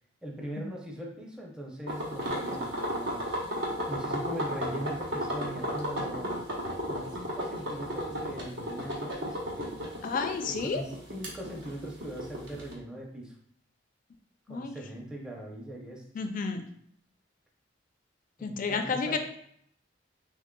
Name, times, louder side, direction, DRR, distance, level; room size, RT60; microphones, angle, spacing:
voice 1, 0.2-3.4 3.9-6.4 6.9-9.7 10.5-13.3 14.5-16.0 18.4-19.2, right 1 dB, 5° right, -2 dB, 0.5 m, -40 dB
sound 1, 1.9-12.7, equal, 75° right, 0.9 m, -33 dB
voice 2, 10.0-10.8 14.5-14.8 16.2-16.6 18.4-19.2, left 4 dB, 45° left, 6 dB, 0.4 m, -31 dB
3.6 x 3.3 x 2.2 m, 0.67 s
head